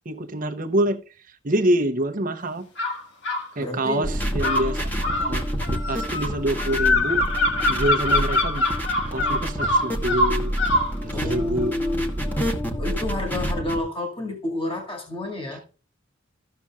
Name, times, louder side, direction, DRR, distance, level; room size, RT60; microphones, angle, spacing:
voice 1, 0.0-1.0 1.3-2.7 3.6-8.7 9.1-10.5 11.0-11.8, right 1 dB, 40° right, 0.8 m, -26 dB
sound 1, 2.8-3.5 4.4-10.9, left 2 dB, 60° left, 1.5 m, -23 dB
voice 2, 3.6-4.0 11.1-12.1 12.8-15.6, left 2 dB, 25° left, 2.0 m, -29 dB
sound 2, 4.0-13.8, equal, 10° left, 1.2 m, -28 dB
14.0 x 6.8 x 2.4 m
head